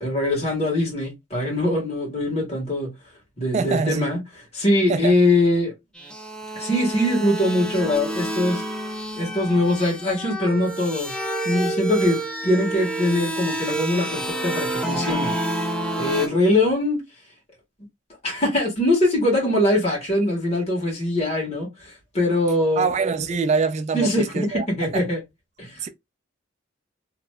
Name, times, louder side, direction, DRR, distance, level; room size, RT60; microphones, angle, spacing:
voice 1, 0.0-2.9 3.4-4.2 4.5-5.7 6.5-8.6 9.1-11.2 11.4-15.3 16.0-17.0 18.2-22.9 23.9-25.2 25.6-25.8, left 1 dB, 35° left, 1.4 m, -22 dB
voice 2, 3.5-4.1 4.9-5.2 22.8-25.1 25.8-25.9, right 4 dB, 35° right, 0.3 m, -24 dB
sound 1, 6.0-16.3, right 1 dB, 5° left, 0.6 m, -29 dB
3.1 x 2.8 x 2.2 m
head